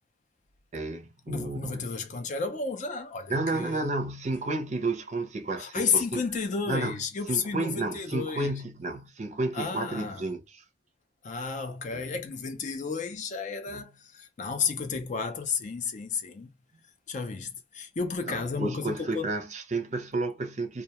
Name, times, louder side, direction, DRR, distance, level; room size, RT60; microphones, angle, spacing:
voice 1, 0.7-1.9 3.3-6.2 6.7-10.6 11.9-12.0 13.7-13.9 18.3-20.8, right 2 dB, 35° right, 0.5 m, -32 dB
voice 2, 1.3-3.9 5.6-8.5 9.5-10.2 11.2-16.5 17.1-19.3, left 5 dB, 40° left, 0.4 m, -32 dB
2.2 x 2.1 x 2.8 m
head